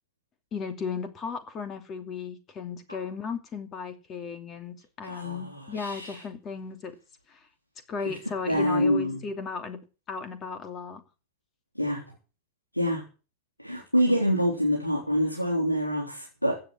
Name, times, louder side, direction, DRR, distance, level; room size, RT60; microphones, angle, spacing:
voice 1, 0.5-7.0 7.3-7.5 7.9-9.8 10.1-11.0, left 5 dB, 30° left, 8 dB, 2.6 m, -35 dB
voice 2, 5.0-6.1 8.5-9.2 11.8-12.0 12.7-13.0 13.6-16.6, equal, 90° left, 0 dB, 3.7 m, -26 dB
15.5 x 8.4 x 7.3 m, 0.34 s
figure-of-eight pair, 90°, 0 cm